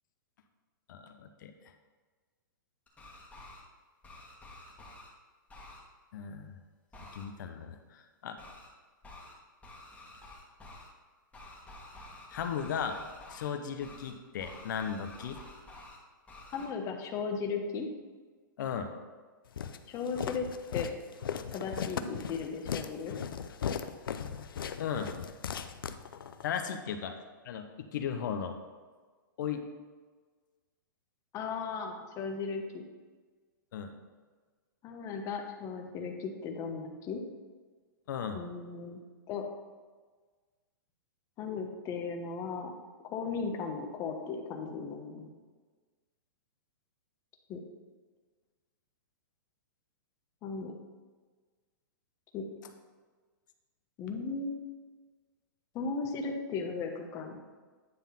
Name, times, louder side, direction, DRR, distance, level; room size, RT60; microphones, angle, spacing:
voice 1, 0.9-1.5 6.1-6.6 7.1-8.4 12.3-13.0 13.3-15.4 18.6-18.9 24.8-25.1 26.4-27.1 27.4-28.6 29.4-29.6 33.7-33.9 38.1-38.4, left 7 dB, 60° left, 6 dB, 0.9 m, -36 dB
sound 1, 2.9-3.6 4.0-5.1 5.5-5.8 6.9-7.2 8.4-8.7 9.0-9.3 9.6-10.9 11.3-13.5 13.8-14.1 14.4-16.0 16.3-16.7, left 2 dB, 10° left, 1.7 m, -50 dB
voice 2, 16.5-17.9 19.9-20.5 20.7-20.9 21.5-23.2 31.3-32.8 34.8-37.2 38.3-39.0 39.3-39.4 41.4-42.7 43.0-45.3 47.5-47.6 50.4-50.8 52.3-52.5 54.0-54.6 55.7-57.6, left 5 dB, 30° left, 3 dB, 1.0 m, -36 dB
Walk footsteps, 19.6-26.5, left 7 dB, 80° left, 0.5 m, -37 dB
9.6 x 3.6 x 5.8 m, 1.4 s
hypercardioid pair, 135°, 11 cm